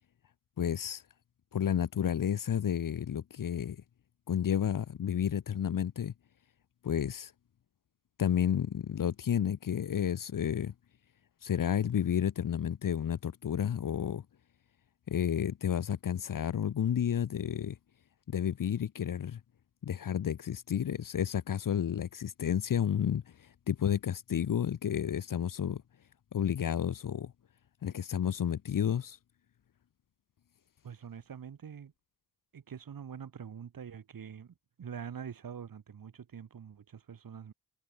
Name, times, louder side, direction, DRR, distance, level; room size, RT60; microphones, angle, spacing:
voice 1, 0.6-1.0 1.5-3.8 4.3-6.1 6.8-7.3 8.2-10.7 11.4-14.2 15.1-17.8 18.3-19.4 19.8-23.2 23.7-25.8 26.3-27.3 27.8-29.2, left 9 dB, 65° left, 1.2 m, -31 dB
voice 2, 30.8-31.9 32.5-37.5, right 7 dB, 75° right, 4.8 m, -45 dB
cardioid pair, 55°, 35 cm